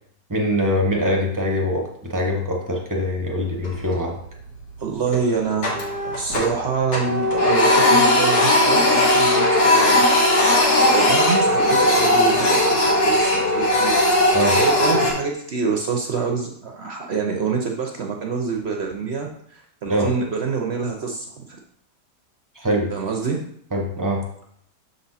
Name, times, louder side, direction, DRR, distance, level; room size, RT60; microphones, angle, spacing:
voice 1, 0.3-4.1 14.3-14.6 19.8-20.1 22.6-22.9 23.7-24.2, equal, 20° right, 0 dB, 0.5 m, -23 dB
Printer, 3.5-4.1 4.5-4.6 5.1-6.6 6.9-15.1, left 1 dB, 80° left, 2.2 m, -18 dB
voice 2, 4.8-5.8 6.0-10.0 10.6-13.9 14.6-21.6 22.9-23.4, right 5 dB, 65° right, 1 dB, 0.6 m, -26 dB
6.6 x 4.2 x 4.1 m, 0.69 s
omnidirectional pair, 1.9 m